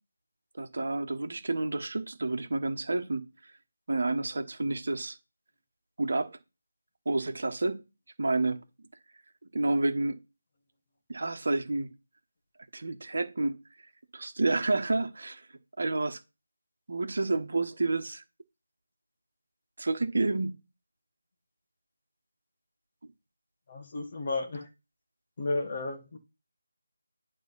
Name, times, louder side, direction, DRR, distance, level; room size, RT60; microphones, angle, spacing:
voice 1, 0.5-3.3 3.9-5.2 6.0-6.4 7.0-7.8 8.2-8.6 9.5-10.2 11.1-11.9 12.7-13.6 14.1-15.4 15.8-16.2 16.9-18.2 19.8-20.6, right 2 dB, 55° right, 1.3 m, -29 dB
voice 2, 23.7-24.7 25.4-26.2, left 2 dB, 35° left, 1.6 m, -33 dB
9.2 x 3.6 x 5.7 m
figure-of-eight pair, 160°, 0 cm